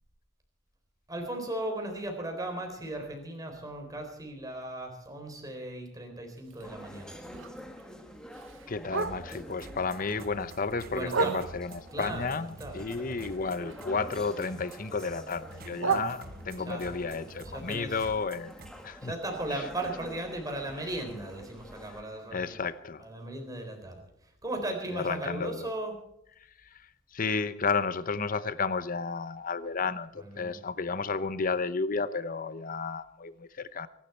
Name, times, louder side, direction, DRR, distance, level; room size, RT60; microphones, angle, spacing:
voice 1, 1.1-7.2 10.9-11.5 11.9-13.3 15.8-16.1 16.7-16.8 17.4-18.0 19.0-22.6 23.0-25.9 30.2-30.6, right 1 dB, 20° right, 3 dB, 4.0 m, -37 dB
Bark, 6.4-9.6 10.0-11.9 12.3-14.2 14.4-16.8 17.2-21.1 21.4-21.5 21.8-22.2 22.7-22.8 23.1-23.2 23.7-23.8, right 5 dB, 85° right, 1.0 m, -37 dB
sound 1, 6.6-22.0, equal, 5° left, 1.6 m, -48 dB
voice 2, 8.7-18.5 18.8-19.1 22.3-23.0 24.9-25.7 26.7-26.8 27.1-33.9, left 4 dB, 45° left, 14 dB, 0.8 m, -32 dB
sound 2, 9.0-18.7, right 2 dB, 50° right, 1.1 m, -48 dB
24.0 x 12.0 x 4.5 m, 0.77 s
head